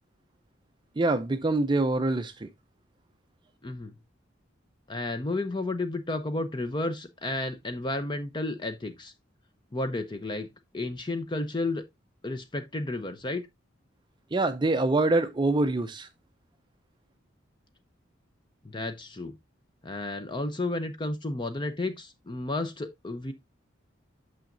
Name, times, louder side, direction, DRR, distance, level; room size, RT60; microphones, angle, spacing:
voice 1, 1.0-2.5 14.3-16.1, right 2 dB, 25° right, 0.5 m, -25 dB
voice 2, 4.9-9.1 9.7-10.5 10.7-11.8 12.2-13.5 18.6-19.3 19.8-23.3, left 2 dB, 25° left, 0.6 m, -32 dB
8.7 x 6.4 x 2.5 m
head